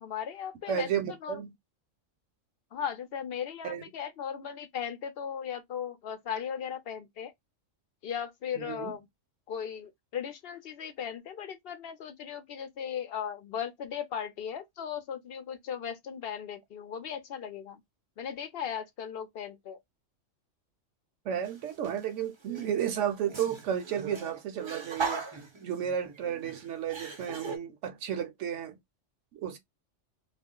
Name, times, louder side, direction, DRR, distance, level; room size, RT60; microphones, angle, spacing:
voice 1, 0.0-0.9 1.2-1.3 2.7-7.3 8.0-9.0 9.5-17.8 18.2-19.8, left 8 dB, 55° left, 0.8 m, -37 dB
voice 2, 0.7-1.5 3.6-3.8 8.6-9.0 21.2-28.8 29.3-29.6, right 9 dB, 75° right, 0.9 m, -33 dB
sound 1, 21.4-22.0 22.4-27.6, right 5 dB, 35° right, 0.4 m, -39 dB
2.4 x 2.1 x 3.6 m
omnidirectional pair, 1.3 m